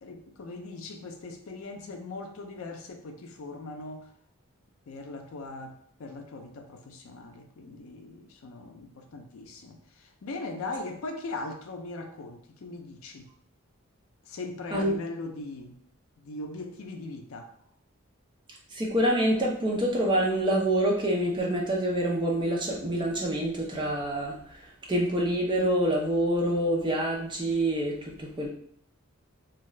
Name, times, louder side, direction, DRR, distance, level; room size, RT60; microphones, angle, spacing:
voice 1, 0.0-4.1 4.9-13.3 14.2-15.8 16.2-17.5, left 2 dB, 70° left, 4 dB, 0.4 m, -40 dB
voice 2, 18.7-24.4 24.9-28.5, right 1 dB, 20° right, -2 dB, 0.5 m, -26 dB
2.5 x 2.3 x 3.1 m, 0.65 s
head